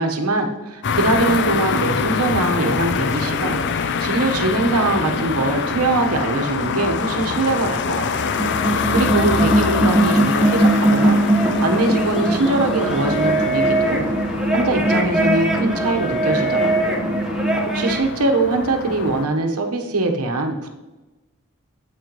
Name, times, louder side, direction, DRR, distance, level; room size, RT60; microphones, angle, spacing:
voice 1, 0.0-8.3 8.7-11.2 11.6-14.1 14.5-17.1 17.7-20.7, right 2 dB, 85° right, 4 dB, 1.2 m, -22 dB
sound 1, 0.8-19.3, left 5 dB, 55° left, 0.5 m, -25 dB
sound 2, 8.2-18.0, right 1 dB, 5° right, 1.3 m, -20 dB
9.1 x 8.4 x 3.1 m, 1.1 s
head